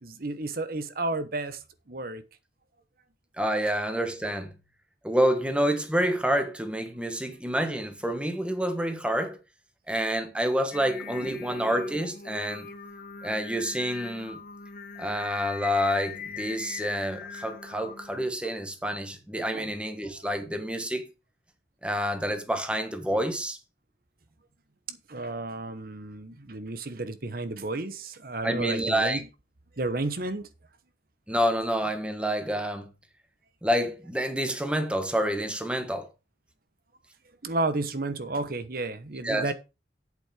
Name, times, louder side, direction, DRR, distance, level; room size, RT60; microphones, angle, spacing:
voice 1, 0.0-2.2 11.1-11.4 19.5-19.7 24.9-29.2 29.8-30.5 37.4-39.5, right 2 dB, 55° right, 1.1 m, -32 dB
voice 2, 3.4-4.5 5.0-9.4 9.9-12.7 13.2-14.4 15.0-21.1 21.8-23.6 28.4-29.2 31.3-32.9 33.6-36.1 39.2-39.5, equal, 5° right, 1.4 m, -28 dB
Singing, 10.7-18.3, left 6 dB, 50° left, 1.0 m, -41 dB
8.5 x 7.2 x 4.9 m
head